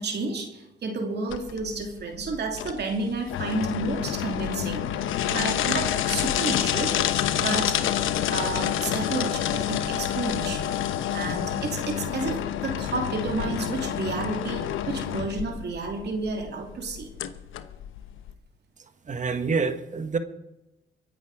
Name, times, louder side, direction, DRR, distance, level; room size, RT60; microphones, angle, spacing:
voice 1, 0.0-4.9 5.3-6.9 7.4-7.8 8.3-10.8 11.1-17.1, right 3 dB, 55° right, 2 dB, 2.9 m, -31 dB
sound 1, 1.3-18.3, left 10 dB, 80° left, 1.0 m, -28 dB
voice 2, 19.1-20.2, right 4 dB, 40° right, 9 dB, 1.5 m, -27 dB
23.5 x 10.0 x 4.9 m, 0.95 s
cardioid pair, 90°, 20 cm